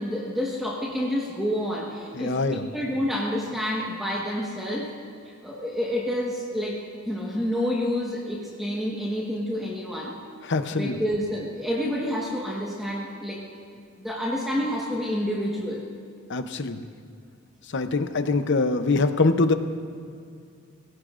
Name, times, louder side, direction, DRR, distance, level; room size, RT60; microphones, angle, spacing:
voice 1, 0.0-4.9 5.4-6.8 7.0-10.2 10.7-13.4 14.0-15.8, equal, ahead, -5 dB, 1.4 m, -28 dB
voice 2, 2.1-2.7 10.4-11.0 16.3-16.8 17.7-19.5, left 3 dB, 60° left, 9 dB, 0.7 m, -23 dB
23.0 x 17.0 x 2.5 m, 2.4 s
head